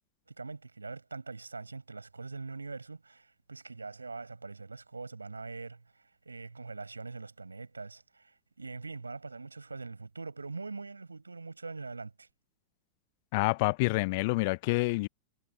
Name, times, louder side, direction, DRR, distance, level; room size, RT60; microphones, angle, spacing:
voice 1, 0.3-12.3, right 3 dB, 80° right, 6.0 m, -43 dB
voice 2, 13.3-15.1, left 25 dB, 50° left, 0.7 m, -27 dB
figure-of-eight pair, 90°, 0 cm